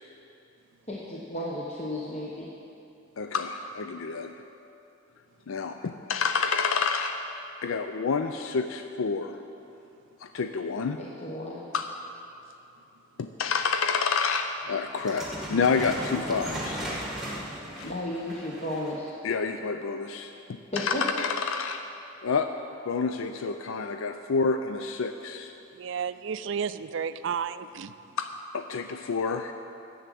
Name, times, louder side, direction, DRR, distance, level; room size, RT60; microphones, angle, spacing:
voice 1, 0.9-2.5 11.0-11.7 17.8-19.2 20.7-21.0, left 1 dB, 30° left, -4 dB, 0.9 m, -34 dB
voice 2, 3.2-4.3 5.5-7.2 7.6-9.4 10.2-11.0 11.7-11.9 13.2-16.8 17.8-17.9 19.2-21.8 22.2-22.5 22.9-25.5 28.2-28.3 28.5-29.5, left 5 dB, 75° left, 7 dB, 0.4 m, -28 dB
sound 1, 14.9-19.1, right 1 dB, ahead, 1.5 m, -36 dB
voice 3, 25.8-27.9, right 6 dB, 60° right, 13 dB, 0.4 m, -32 dB
10.5 x 7.2 x 8.4 m, 2.8 s
head